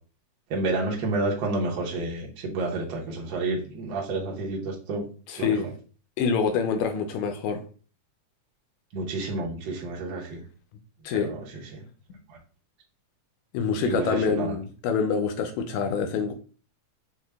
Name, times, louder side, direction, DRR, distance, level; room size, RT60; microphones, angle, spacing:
voice 1, 0.5-5.0 5.4-5.6 8.9-10.4 11.1-11.4 11.7-11.8 12.3-12.4 13.8-14.5, right 3 dB, 80° right, 1.0 m, -30 dB
voice 2, 5.3-5.7 6.2-7.6 11.0-11.3 12.1-12.2 13.5-16.3, left 6 dB, 80° left, 1.8 m, -26 dB
6.1 x 2.2 x 3.4 m
omnidirectional pair, 3.5 m